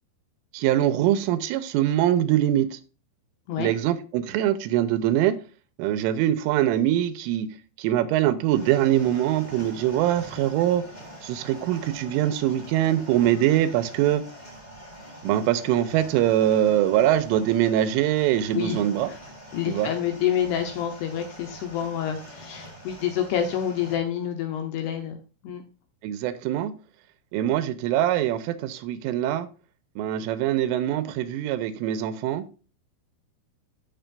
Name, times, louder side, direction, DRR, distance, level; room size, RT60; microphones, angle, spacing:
voice 1, 0.5-2.8 3.6-5.4 5.8-7.5 7.8-10.8 11.2-14.2 15.2-19.1 19.7-19.9 26.0-26.7 27.3-29.5 30.0-32.4, right 12 dB, 90° right, 3.3 m, -23 dB
sound 1, 8.5-24.0, right 1 dB, 20° left, 1.2 m, -44 dB
voice 2, 18.5-19.2 19.5-25.2 25.4-25.6, left 9 dB, 75° left, 2.6 m, -28 dB
13.5 x 5.1 x 2.5 m
omnidirectional pair, 5.7 m